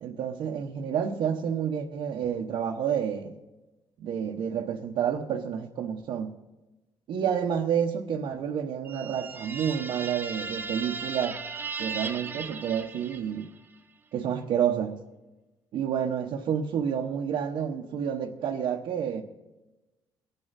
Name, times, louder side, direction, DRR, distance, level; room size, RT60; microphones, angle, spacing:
voice 1, 0.0-3.3 4.0-6.3 7.1-11.4 11.8-13.5 14.1-15.0 15.7-19.2, right 8 dB, 65° right, 0 dB, 1.1 m, -29 dB
sound 1, 8.8-13.6, right 4 dB, 20° right, 0.6 m, -37 dB
23.5 x 7.9 x 4.1 m, 1.1 s
cardioid pair, 150°, 9 cm